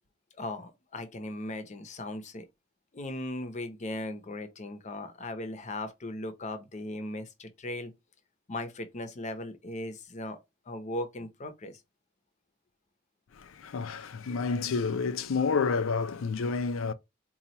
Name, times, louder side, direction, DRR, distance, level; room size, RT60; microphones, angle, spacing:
voice 1, 0.4-2.5 2.9-7.9 8.5-10.4 10.7-11.8, left 1 dB, 35° left, 0.7 m, -38 dB
voice 2, 13.3-16.9, left 5 dB, 80° left, 0.5 m, -29 dB
4.2 x 2.3 x 2.8 m
head